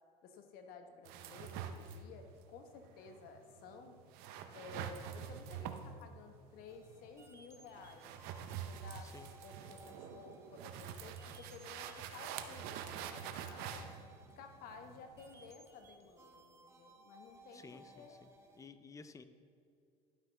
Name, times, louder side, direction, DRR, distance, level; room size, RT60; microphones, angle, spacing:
voice 1, 0.2-4.0 4.5-8.2 8.5-13.9 14.4-17.6 17.9-18.2, left 5 dB, 65° left, 5 dB, 1.0 m, -54 dB
sound 1, 1.1-15.5, right 8 dB, 70° right, 0.6 m, -47 dB
sound 2, 6.7-18.7, right 2 dB, 15° right, 1.0 m, -61 dB
voice 2, 17.5-18.3 18.5-19.2, left 4 dB, 20° left, 11 dB, 0.5 m, -54 dB
11.5 x 5.6 x 3.4 m, 2.4 s
supercardioid pair, 95°, 17 cm